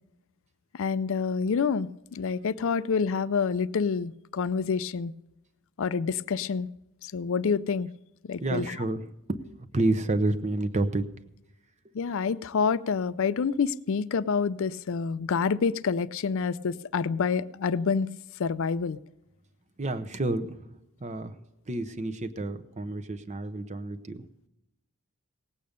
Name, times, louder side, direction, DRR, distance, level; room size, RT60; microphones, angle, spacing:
voice 1, 0.8-5.1 5.8-6.7 7.1-7.9 8.3-8.8 11.9-18.1 18.4-19.0, left 5 dB, 60° left, 16 dB, 0.4 m, -27 dB
voice 2, 8.4-11.0 11.8-11.9 19.8-20.7 21.0-21.4 21.7-24.3, right 2 dB, 30° right, 11 dB, 0.7 m, -30 dB
18.0 x 8.5 x 5.2 m, 0.91 s
head